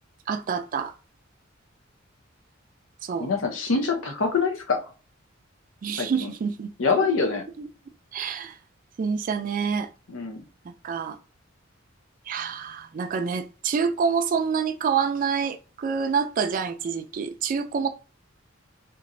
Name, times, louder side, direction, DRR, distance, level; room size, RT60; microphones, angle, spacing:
voice 1, 0.3-0.9 3.0-3.3 5.8-6.7 7.0-7.1 7.6-7.7 8.1-8.6 9.0-9.9 10.6-11.2 12.3-17.9, right 6 dB, 45° right, 0.3 m, -27 dB
voice 2, 3.2-4.8 6.0-6.3 6.8-7.4 10.1-10.4, left 4 dB, 85° left, 0.7 m, -25 dB
3.0 x 2.4 x 2.6 m
head